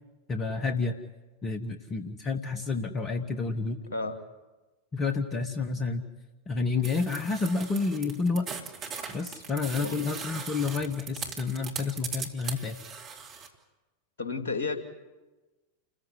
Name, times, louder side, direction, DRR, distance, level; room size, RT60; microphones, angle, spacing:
voice 1, 0.3-1.0 1.4-3.8 4.9-6.0 6.5-8.5 9.1-12.8, left 4 dB, 25° left, 8 dB, 1.4 m, -29 dB
sound 1, 6.8-13.5, right 6 dB, 30° right, 3.0 m, -39 dB
voice 2, 14.2-14.8, left 4 dB, 60° left, 6 dB, 2.6 m, -32 dB
29.0 x 15.0 x 9.7 m, 1.2 s
figure-of-eight pair, 90°, 0 cm